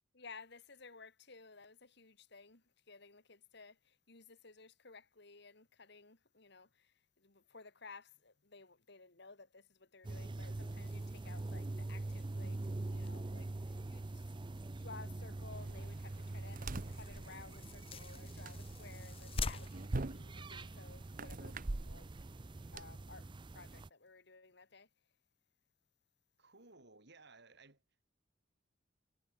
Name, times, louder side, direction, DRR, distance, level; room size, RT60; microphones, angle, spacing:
voice 1, 0.1-14.3 14.8-21.6 21.8-22.1 22.7-24.9, left 4 dB, 60° left, 2.6 m, -56 dB
sound 1, 10.0-23.9, right 2 dB, 25° right, 0.5 m, -44 dB
sound 2, 10.8-20.9, left 4 dB, 30° left, 0.7 m, -49 dB
sound 3, 15.5-22.8, right 2 dB, 45° right, 1.0 m, -45 dB
voice 2, 26.4-28.0, right 3 dB, 60° right, 4.1 m, -60 dB
head